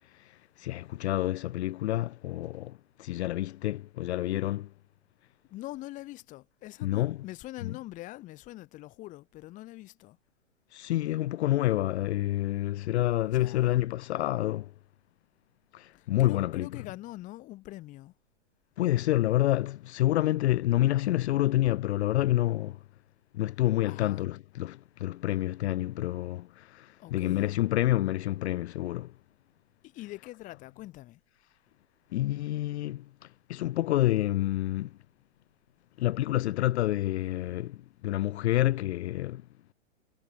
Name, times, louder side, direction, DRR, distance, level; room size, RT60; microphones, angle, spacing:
voice 1, 0.6-4.7 6.8-7.2 7.6-7.8 10.7-14.7 15.7-16.8 18.8-22.8 23.3-29.1 32.1-33.1 33.5-34.9 36.0-39.4, left 15 dB, 65° left, 0.5 m, -28 dB
voice 2, 5.5-10.2 13.3-13.8 15.9-18.1 23.8-24.2 27.0-27.6 29.8-31.2, left 17 dB, 20° left, 0.7 m, -44 dB
hypercardioid pair, 130°, 37 cm